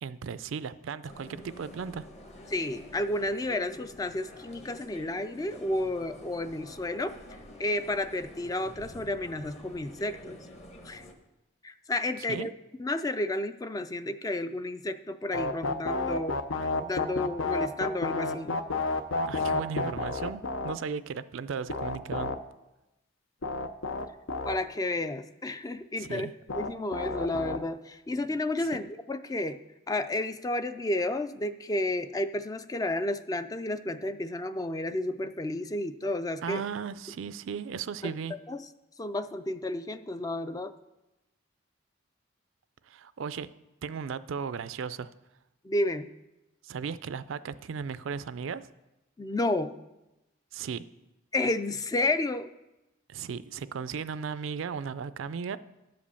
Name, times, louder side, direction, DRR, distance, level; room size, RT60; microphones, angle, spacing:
voice 1, 0.0-2.1 12.3-12.5 19.3-22.3 26.0-26.3 36.4-38.3 42.9-43.5 43.8-45.1 46.6-48.7 50.5-50.8 53.1-55.6, right 6 dB, 75° right, 15 dB, 0.4 m, -36 dB
sound 1, 1.1-11.1, left 1 dB, 35° left, 1.1 m, -48 dB
voice 2, 2.5-7.2 7.6-10.5 10.8-11.0 11.6-12.5 12.8-16.4 16.8-18.6 24.4-26.3 26.6-29.6 29.9-36.6 38.0-38.1 38.5-38.6 39.0-40.7 45.6-46.1 49.2-49.7 51.3-52.5, left 2 dB, 20° left, 11 dB, 0.3 m, -31 dB
sound 2, 15.3-20.7 21.7-22.3 23.4-24.5 26.5-27.6, left 3 dB, 75° left, 0.6 m, -30 dB
10.5 x 5.2 x 6.9 m, 0.97 s
head